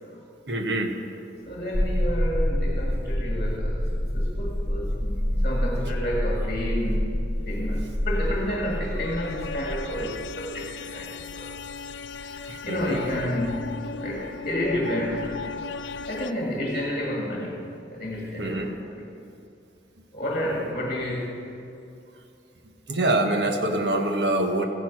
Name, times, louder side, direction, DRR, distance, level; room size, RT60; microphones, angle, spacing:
voice 1, 0.5-0.9 5.9-6.0 12.5-13.0 18.4-18.7 22.9-24.6, right 2 dB, 65° right, 5 dB, 1.3 m, -25 dB
voice 2, 1.5-3.8 4.1-7.0 7.5-11.5 12.6-15.5 16.1-17.6 17.9-19.0 20.1-21.5, equal, 40° left, -1 dB, 1.9 m, -30 dB
sound 1, 1.7-10.3, equal, 15° left, 1.1 m, -27 dB
sound 2, 8.2-16.3, left 4 dB, 75° left, 0.5 m, -37 dB
14.5 x 10.5 x 6.0 m, 2.7 s
head